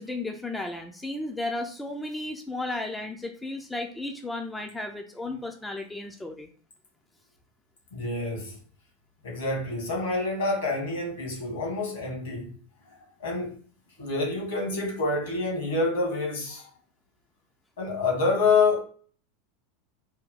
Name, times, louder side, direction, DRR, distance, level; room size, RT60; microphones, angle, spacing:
voice 1, 0.0-6.5, left 2 dB, 10° left, 0.5 m, -34 dB
voice 2, 7.9-8.6 9.2-12.6 13.2-13.5 14.0-16.7 17.8-18.8, left 3 dB, 65° left, 1.7 m, -27 dB
3.6 x 2.2 x 3.9 m
figure-of-eight pair, 85°, 0 cm